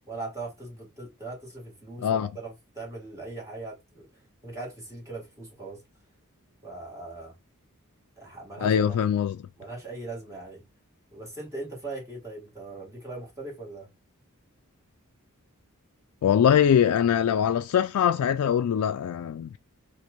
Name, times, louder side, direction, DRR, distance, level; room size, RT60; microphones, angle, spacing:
voice 1, 0.1-5.8 6.6-7.4 8.2-9.0 9.6-10.6 11.1-13.9, right 2 dB, 15° right, 2.0 m, -40 dB
voice 2, 8.6-9.4 16.2-19.6, left 8 dB, 75° left, 0.3 m, -22 dB
4.4 x 2.6 x 2.5 m
head